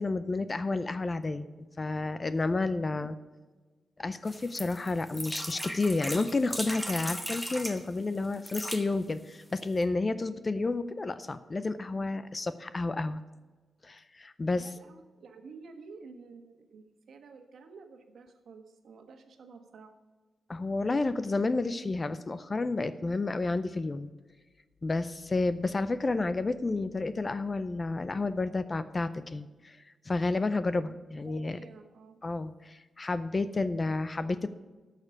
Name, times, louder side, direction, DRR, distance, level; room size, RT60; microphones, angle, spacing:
voice 1, 0.0-1.5 1.8-3.2 4.0-13.2 13.8-14.7 20.5-24.1 24.8-31.6 32.2-34.5, left 3 dB, 20° left, 13 dB, 0.4 m, -31 dB
sound 1, 4.3-7.8 8.3-8.8 9.5-9.6 9.8-9.9, equal, ahead, 0.9 m, -37 dB
voice 2, 14.5-19.9 30.9-32.2, right 4 dB, 60° right, 6 dB, 1.4 m, -51 dB
12.0 x 6.6 x 7.1 m, 1.3 s
wide cardioid pair, 175°, 0 cm